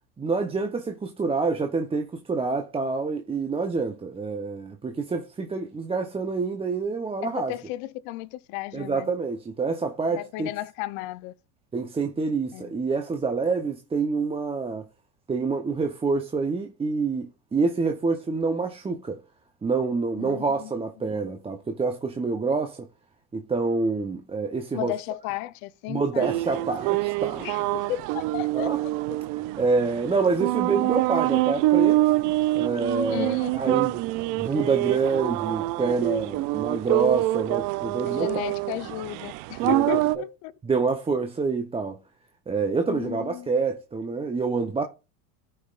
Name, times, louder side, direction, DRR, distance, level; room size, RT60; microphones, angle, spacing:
voice 1, 0.2-7.5 8.7-10.5 11.7-14.9 15.3-19.2 19.6-22.9 23.3-24.9 25.9-27.5 28.5-28.8 29.6-32.0 32.5-34.0 34.4-38.4 39.6-40.3 40.6-42.0 42.5-44.8, right 4 dB, 15° right, 0.8 m, -27 dB
voice 2, 7.2-9.1 10.1-11.3 12.5-12.7 20.2-20.7 21.0-21.3 24.7-26.5 27.4-28.7 33.1-33.9 38.1-40.5 42.9-43.5, left 16 dB, 50° left, 0.7 m, -34 dB
sound 1, 26.2-40.2, right 18 dB, 45° right, 0.5 m, -26 dB
13.0 x 5.6 x 2.4 m
hypercardioid pair, 105°, 45 cm